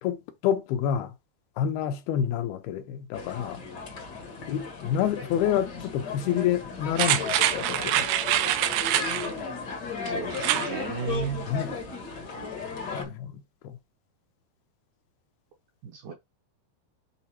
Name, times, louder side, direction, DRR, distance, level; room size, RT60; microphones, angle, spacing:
voice 1, 0.0-1.1 1.6-3.6 4.5-8.1 11.5-11.8 12.9-13.8, left 9 dB, 85° left, 2.7 m, -28 dB
sound 1, 3.1-13.0, left 4 dB, 70° left, 1.0 m, -35 dB
sound 2, 7.0-9.3 10.3-10.7 11.1-11.2, right 13 dB, 90° right, 2.7 m, -25 dB
voice 2, 10.1-11.5 15.8-16.1, right 7 dB, 75° right, 1.9 m, -34 dB
8.4 x 4.1 x 2.9 m
omnidirectional pair, 4.5 m